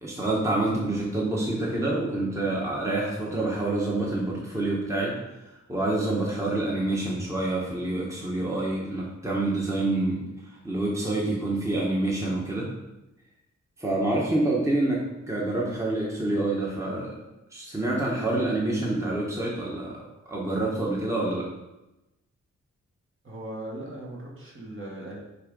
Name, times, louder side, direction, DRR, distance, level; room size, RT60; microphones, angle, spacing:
voice 1, 0.0-10.3 10.6-12.7 13.8-17.1 17.5-21.5, right 2 dB, 10° right, -4 dB, 1.3 m, -27 dB
voice 2, 23.2-25.2, right 1 dB, 45° right, -4 dB, 2.1 m, -38 dB
6.6 x 4.8 x 5.4 m, 0.98 s
wide cardioid pair, 135°, 30 cm